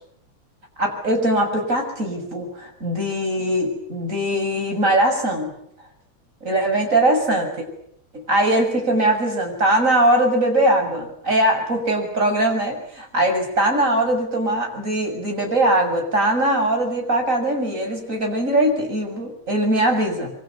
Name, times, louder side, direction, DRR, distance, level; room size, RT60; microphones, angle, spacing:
voice 1, 0.8-5.5 6.4-7.5 8.1-20.3, right 1 dB, 35° right, 3 dB, 7.2 m, -21 dB
26.5 x 24.5 x 8.3 m, 0.71 s
omnidirectional pair, 2.3 m